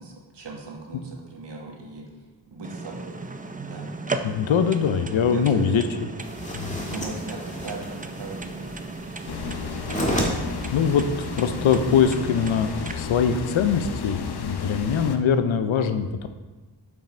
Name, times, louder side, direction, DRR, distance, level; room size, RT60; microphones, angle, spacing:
voice 1, 0.0-2.1 2.5-3.2 3.6-3.9 4.9-5.8 6.7-9.4, right 3 dB, 65° right, -1 dB, 1.7 m, -39 dB
sound 1, 2.6-12.9, right 3 dB, 20° right, 0.5 m, -36 dB
voice 2, 4.2-5.8 6.5-6.8 10.7-16.3, left 7 dB, 90° left, 9 dB, 0.7 m, -22 dB
sound 2, 6.2-12.1, equal, 15° left, 1.7 m, -33 dB
sound 3, 9.3-15.2, left 6 dB, 60° left, 0.8 m, -32 dB
7.3 x 6.0 x 4.4 m, 1.2 s
cardioid pair, 65°, 45 cm